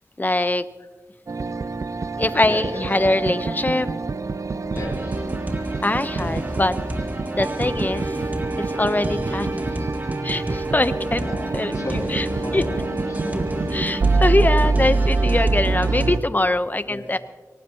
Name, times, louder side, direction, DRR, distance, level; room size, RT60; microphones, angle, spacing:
voice 1, 0.2-0.6 2.2-3.9 5.8-6.8 7.3-8.2 8.7-9.5 10.2-11.3 11.5-12.2 12.5-12.6 13.7-17.2, left 2 dB, 30° left, 11 dB, 1.0 m, -22 dB
sound 1, 1.3-16.2, right 3 dB, 65° right, 0.6 m, -25 dB
voice 2, 2.3-2.8 3.2-3.4 4.6-5.2 8.2-8.3 11.2-11.5 11.7-13.4 16.8-17.1, left 2 dB, 75° left, -6 dB, 3.4 m, -35 dB
sound 2, 4.8-16.2, equal, 30° right, 2.0 m, -31 dB
sound 3, 11.4-15.6, left 1 dB, ahead, 6.2 m, -37 dB
24.0 x 18.5 x 3.0 m, 1.3 s
wide cardioid pair, 50°, 6 cm